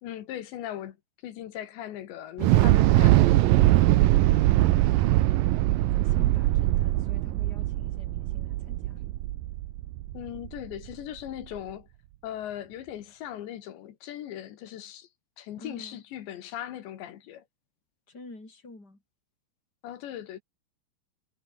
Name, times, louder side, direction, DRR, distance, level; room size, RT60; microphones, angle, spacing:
voice 1, 0.0-1.0 1.2-3.3 10.1-11.9 12.2-15.1 15.4-17.5 19.8-20.4, left 11 dB, 75° left, 4.0 m, -39 dB
Thunder / Explosion, 2.4-10.6, right 16 dB, 80° right, 2.0 m, -22 dB
voice 2, 4.2-5.0 5.8-9.0 15.6-16.0 18.1-19.0, left 2 dB, 20° left, 8.5 m, -48 dB
omnidirectional pair, 5.2 m